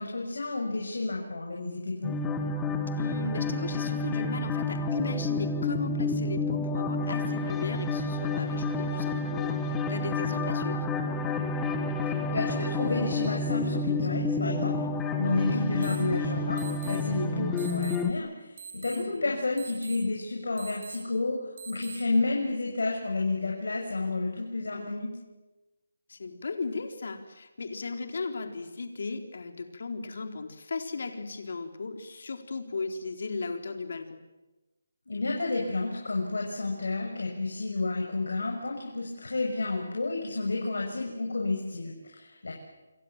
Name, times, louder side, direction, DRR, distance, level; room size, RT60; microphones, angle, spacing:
voice 1, 0.0-2.1 12.3-14.8 15.1-25.1 35.1-42.5, left 3 dB, 80° left, 0 dB, 6.9 m, -31 dB
sound 1, 2.0-18.1, left 3 dB, 10° left, 1.5 m, -30 dB
voice 2, 2.9-10.9 15.2-15.6 18.9-19.4 24.7-25.0 26.1-34.2, left 4 dB, 60° left, 5 dB, 4.0 m, -36 dB
sound 2, 15.8-16.0 16.6-17.0 17.6-18.0 18.6-19.0 19.6-20.0 20.6-21.0 21.6-22.0, right 6 dB, 35° right, 4.9 m, -42 dB
28.0 x 25.5 x 7.5 m, 1.1 s
hypercardioid pair, 170°, 0 cm